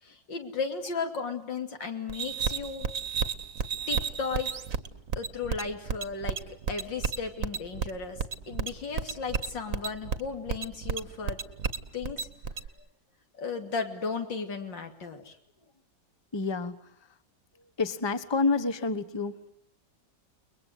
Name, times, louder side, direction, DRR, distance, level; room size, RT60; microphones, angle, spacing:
voice 1, 0.0-2.9 3.9-4.5 5.2-11.4 11.9-12.3 13.3-15.4, left 5 dB, 85° left, 5 dB, 3.6 m, -35 dB
sound 1, 2.1-12.7, right 6 dB, 50° right, 1.6 m, -32 dB
voice 2, 16.3-16.9 17.8-19.5, left 4 dB, 15° left, 11 dB, 1.1 m, -29 dB
30.0 x 22.0 x 8.1 m, 0.65 s
omnidirectional pair, 1.9 m